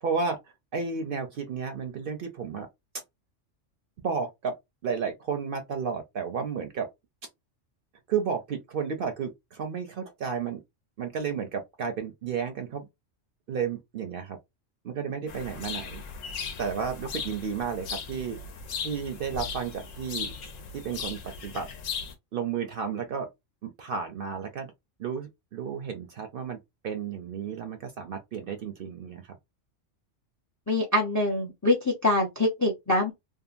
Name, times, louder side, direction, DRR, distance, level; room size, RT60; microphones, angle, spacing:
voice 1, 0.0-0.4 0.7-2.7 4.0-4.6 4.8-6.9 8.1-10.6 11.0-12.8 13.5-14.4 14.8-16.1 16.6-18.4 18.8-20.3 20.7-21.7 22.3-23.3 23.6-24.7 25.0-26.6 26.8-29.4, right 6 dB, 60° right, 0.6 m, -32 dB
sound 1, 15.3-22.1, left 5 dB, 85° left, 1.0 m, -37 dB
voice 2, 30.7-33.1, left 2 dB, 30° left, 0.3 m, -24 dB
2.7 x 2.4 x 2.4 m
omnidirectional pair, 1.3 m